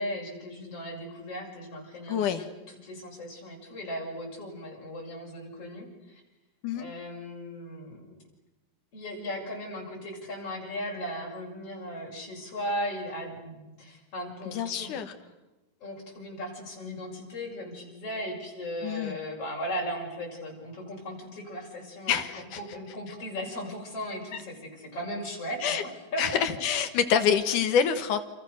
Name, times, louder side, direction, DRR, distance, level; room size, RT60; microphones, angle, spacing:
voice 1, 0.0-6.2 6.7-8.2 8.9-15.0 15.8-26.6, equal, 35° left, 0 dB, 7.5 m, -37 dB
voice 2, 2.1-2.4 6.6-6.9 14.5-15.1 18.8-19.2 22.1-22.6 25.6-25.8 26.2-28.2, left 7 dB, 60° left, 10 dB, 2.3 m, -26 dB
29.5 x 28.5 x 6.6 m, 1.1 s
omnidirectional pair, 4.9 m